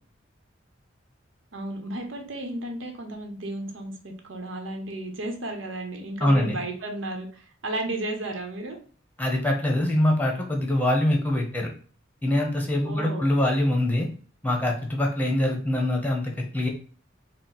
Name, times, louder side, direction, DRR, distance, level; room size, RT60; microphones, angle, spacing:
voice 1, 1.5-8.8 12.8-13.3, right 1 dB, 85° right, 4 dB, 0.9 m, -33 dB
voice 2, 6.2-6.6 9.2-11.7 12.2-14.1 14.4-16.7, left 1 dB, 10° left, 0 dB, 0.9 m, -24 dB
4.4 x 2.1 x 3.9 m, 0.41 s
head